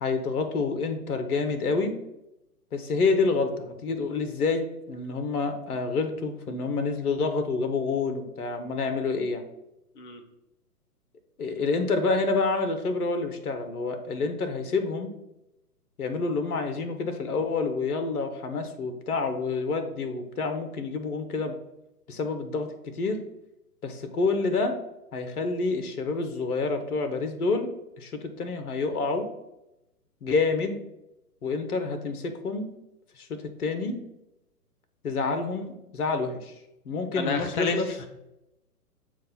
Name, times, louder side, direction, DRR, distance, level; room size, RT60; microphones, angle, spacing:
voice 1, 0.0-2.0 2.7-9.4 11.4-15.1 16.0-21.6 22.1-22.7 22.9-23.2 23.8-24.7 25.1-29.3 30.2-30.8 31.4-32.7 33.2-34.0 35.0-36.5 36.8-37.9, left 4 dB, 65° left, 7 dB, 1.0 m, -28 dB
voice 2, 37.1-38.1, left 4 dB, 35° left, 5 dB, 0.6 m, -30 dB
7.4 x 2.5 x 5.5 m, 0.90 s
figure-of-eight pair, 125°, 47 cm